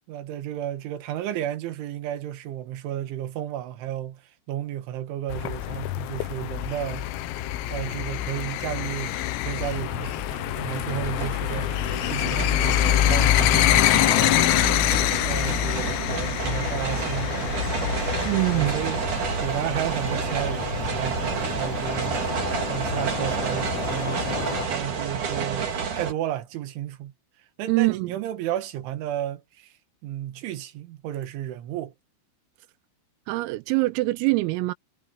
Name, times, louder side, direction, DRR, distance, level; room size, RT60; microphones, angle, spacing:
voice 1, 0.1-4.2 4.5-7.1 7.7-14.7 15.2-17.7 18.5-19.0 19.4-27.1 27.6-29.7 30.0-31.9, right 12 dB, 70° right, 4.0 m, -33 dB
sound 1, 5.3-24.7, left 14 dB, 90° left, 3.9 m, -26 dB
sound 2, 7.1-7.3 7.7-26.1, right 6 dB, 45° right, 3.9 m, -30 dB
voice 2, 18.3-18.8 27.7-28.2 33.3-34.7, right 23 dB, 90° right, 3.4 m, -24 dB
omnidirectional pair, 5.9 m